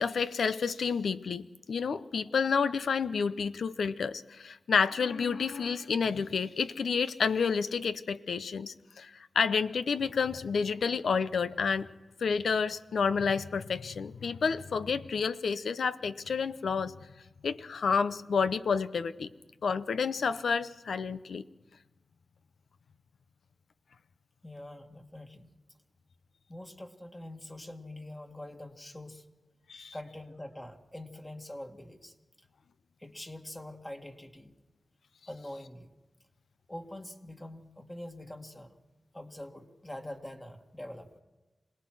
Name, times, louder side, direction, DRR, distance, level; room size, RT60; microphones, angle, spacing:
voice 1, 0.0-11.9 12.2-16.9 17.4-19.3 19.6-21.4 29.7-29.9, left 5 dB, 90° left, 0.7 m, -30 dB
voice 2, 24.4-25.5 26.5-29.2 29.9-32.1 33.0-34.5 35.3-35.9 36.7-38.7 39.1-41.1, left 1 dB, 20° left, 2.0 m, -44 dB
27.0 x 18.5 x 6.2 m
cardioid pair, 60°, 0 cm